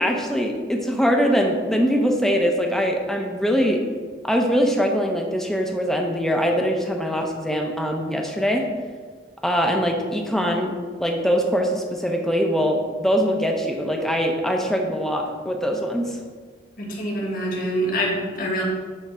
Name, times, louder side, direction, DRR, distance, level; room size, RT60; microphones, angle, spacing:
voice 1, 0.0-3.8 4.2-8.7 9.4-16.2, equal, ahead, 1 dB, 0.8 m, -22 dB
voice 2, 16.8-18.6, equal, 50° left, -2 dB, 1.8 m, -25 dB
9.7 x 3.6 x 5.6 m, 1.6 s
head